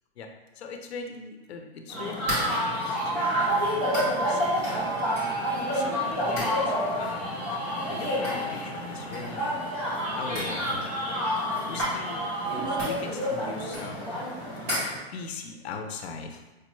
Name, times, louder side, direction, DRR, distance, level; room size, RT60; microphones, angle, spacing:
voice 1, 0.5-4.9 5.7-7.3 7.9-9.6 10.2-11.2 11.7-14.1 14.8-16.4, left 4 dB, 75° left, 4 dB, 0.6 m, -40 dB
sound 1, 1.9-15.0, equal, 10° right, 0.4 m, -28 dB
4.7 x 2.2 x 3.0 m, 1.1 s
hypercardioid pair, 170°, 32 cm